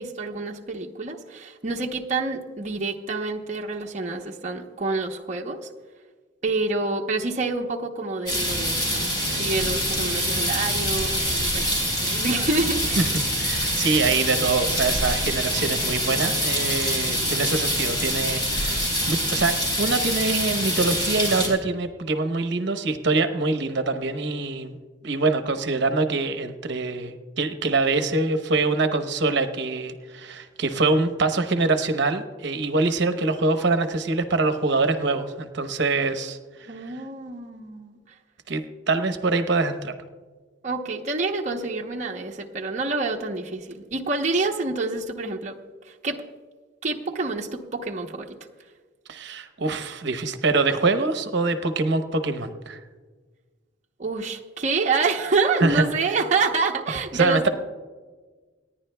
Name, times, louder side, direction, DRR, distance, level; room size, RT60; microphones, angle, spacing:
voice 1, 0.0-5.7 6.4-13.1 36.7-38.0 40.6-45.6 45.9-46.2 46.8-48.4 54.0-57.5, right 3 dB, 40° right, -1 dB, 0.8 m, -27 dB
sound 1, 8.3-21.5, equal, 25° left, 4.1 m, -25 dB
voice 2, 13.0-24.8 25.0-36.9 38.5-39.9 44.4-44.5 49.1-52.8 55.6-56.2 57.1-57.5, right 3 dB, 65° right, 8 dB, 0.9 m, -24 dB
29.0 x 10.0 x 2.2 m, 1.4 s
head